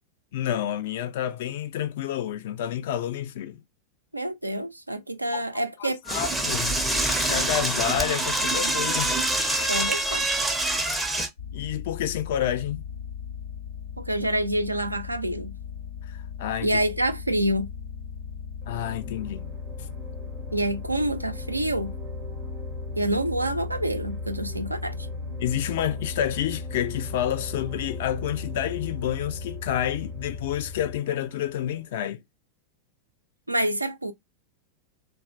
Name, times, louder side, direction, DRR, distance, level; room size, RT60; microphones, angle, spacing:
voice 1, 0.3-3.6 5.3-5.4 5.8-6.8 7.2-9.1 11.5-12.8 16.1-16.8 18.7-19.5 25.4-32.2, left 10 dB, 55° left, 0.3 m, -29 dB
voice 2, 4.1-6.0 9.7-10.3 14.0-15.5 16.6-17.7 20.5-21.9 23.0-25.1 33.5-34.1, right 1 dB, 85° right, 0.4 m, -27 dB
Door / Toilet flush, 6.1-11.3, right 1 dB, 5° right, 0.5 m, -25 dB
sound 1, 11.4-31.0, left 5 dB, 80° left, 0.8 m, -36 dB
sound 2, 18.6-31.9, right 5 dB, 40° right, 0.7 m, -47 dB
2.4 x 2.2 x 2.3 m
figure-of-eight pair, 90°, 0 cm